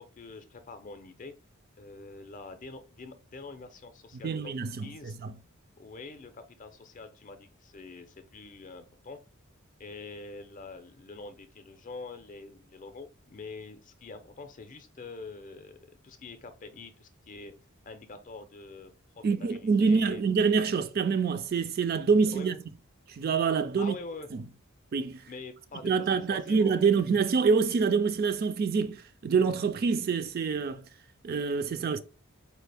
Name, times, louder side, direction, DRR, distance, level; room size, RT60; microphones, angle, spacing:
voice 1, 0.0-1.3 1.8-4.5 4.8-5.1 5.8-9.2 9.8-15.8 16.0-17.5 17.8-20.2 22.2-22.6 23.8-24.3 25.3-26.9, left 3 dB, 35° left, 0.5 m, -45 dB
voice 2, 4.2-5.3 19.2-22.6 23.1-24.0 24.3-24.5 24.9-25.3 25.8-30.8 31.2-32.0, right 5 dB, 45° right, 0.3 m, -26 dB
4.4 x 2.4 x 3.3 m
head